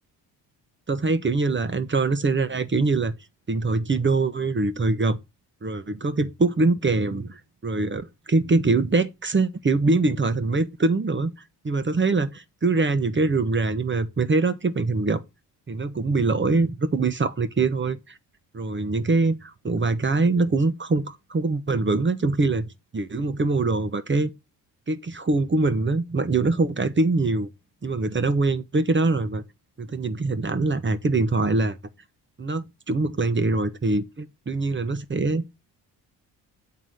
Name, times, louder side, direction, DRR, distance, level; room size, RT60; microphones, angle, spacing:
voice 1, 0.9-3.1 3.5-5.2 5.6-11.3 11.6-15.2 15.7-18.2 18.5-22.7 22.9-24.3 24.9-27.5 27.8-29.4 29.8-31.8 32.4-35.4, right 3 dB, 25° right, 1.1 m, -23 dB
7.6 x 3.9 x 6.4 m
supercardioid pair, 65°, 42 cm